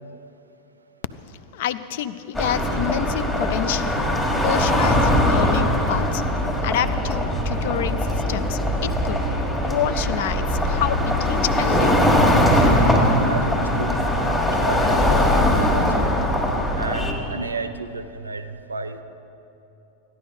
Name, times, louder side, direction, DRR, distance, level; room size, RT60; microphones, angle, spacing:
voice 1, 1.5-4.1 4.4-6.3 6.6-12.2, left 10 dB, 55° left, 14 dB, 0.4 m, -28 dB
sound 1, 2.3-17.1, left 1 dB, 10° left, 1.4 m, -21 dB
voice 2, 13.2-14.4 14.7-15.8 16.8-18.4 18.7-19.0, right 3 dB, 75° right, 10 dB, 0.5 m, -32 dB
14.0 x 10.5 x 3.9 m, 2.9 s
figure-of-eight pair, 90°, 0 cm